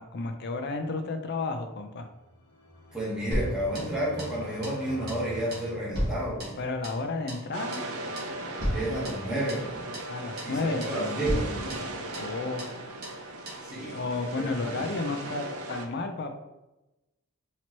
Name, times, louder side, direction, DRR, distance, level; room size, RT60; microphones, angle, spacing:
voice 1, 0.0-2.1 6.6-7.8 10.1-11.3 12.2-12.7 13.9-16.4, left 3 dB, 50° left, 6 dB, 0.4 m, -32 dB
sound 1, 2.1-6.6, left 1 dB, 80° left, 1.2 m, -44 dB
voice 2, 2.9-6.6 8.7-9.8 10.4-12.0 13.6-14.8, right 1 dB, 5° right, -8 dB, 1.2 m, -32 dB
sound 2, 3.3-4.4 4.6-4.8 5.1-5.3 5.5-7.0 7.3-7.5 7.7-7.9 8.2-8.3 8.6-9.7 9.9-10.1 10.4-10.6 10.8-11.0 11.2-12.3 12.6-12.8 13.0-13.2 13.5-13.6, equal, 45° right, 1.3 m, -34 dB
FX mar bendito en D, 7.5-15.9, right 2 dB, 85° right, 0.6 m, -38 dB
4.4 x 2.9 x 2.9 m, 1.0 s
head